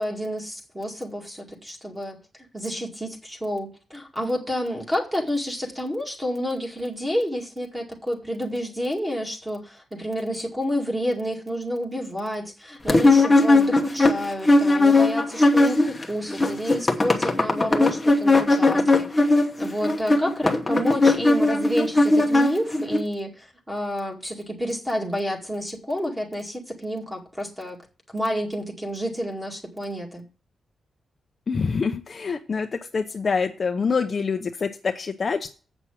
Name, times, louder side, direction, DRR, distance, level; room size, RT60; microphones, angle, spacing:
voice 1, 0.0-2.2 2.5-19.1 19.6-27.8 28.1-30.2, equal, 10° right, 1 dB, 2.1 m, -29 dB
sound 1, 12.9-16.0 16.3-23.0, left 2 dB, 15° left, 1.0 m, -18 dB
voice 2, 31.5-35.5, left 5 dB, 35° left, 5 dB, 0.6 m, -26 dB
8.0 x 6.0 x 7.2 m, 0.36 s
wide cardioid pair, 175°, 0 cm